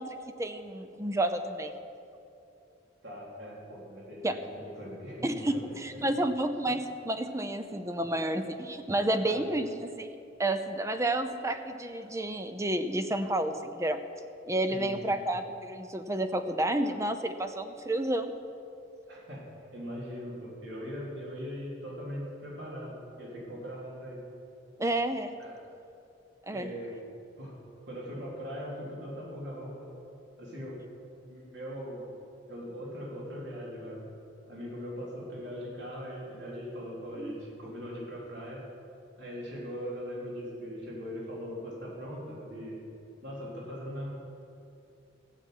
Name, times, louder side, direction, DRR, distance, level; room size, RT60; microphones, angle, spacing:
voice 1, 0.0-1.7 4.2-4.4 5.2-10.1 10.4-14.0 14.5-18.4 24.8-25.3 26.5-26.7 37.2-37.3, right 1 dB, 15° right, 8 dB, 0.6 m, -30 dB
voice 2, 3.0-6.2 9.2-9.4 14.7-15.2 19.1-19.4 19.7-24.2 25.4-25.5 26.5-27.0 27.4-27.5 27.9-29.9 30.4-30.8 31.3-32.1 32.5-34.0 34.5-38.6 39.2-42.8 43.2-44.1, equal, 65° right, -5 dB, 3.5 m, -40 dB
15.0 x 7.3 x 9.4 m, 2.7 s
head